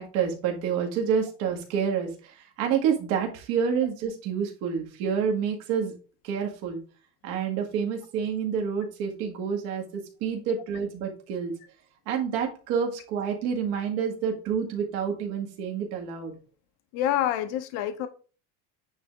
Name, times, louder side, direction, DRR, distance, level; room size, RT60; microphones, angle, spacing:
voice 1, 0.0-5.9 6.2-6.8 7.2-11.5 12.1-16.3, right 7 dB, 70° right, 2.0 m, -28 dB
voice 2, 16.9-18.1, left 11 dB, 70° left, 0.9 m, -27 dB
9.5 x 3.3 x 3.6 m
cardioid pair, 155°, 40 cm